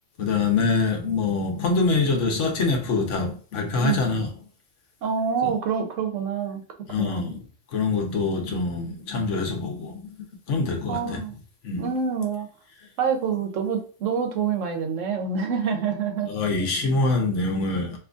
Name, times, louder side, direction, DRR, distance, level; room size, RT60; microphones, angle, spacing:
voice 1, 0.2-4.3 5.4-5.5 6.9-7.4 7.7-10.1 10.5-11.2 11.6-11.9 16.3-18.0, left 3 dB, 75° left, 1.2 m, -24 dB
voice 2, 5.0-6.6 7.0-7.2 10.9-11.3 11.8-12.5 13.0-16.3, right 6 dB, 80° right, 1.1 m, -26 dB
3.6 x 3.1 x 2.5 m
omnidirectional pair, 1.3 m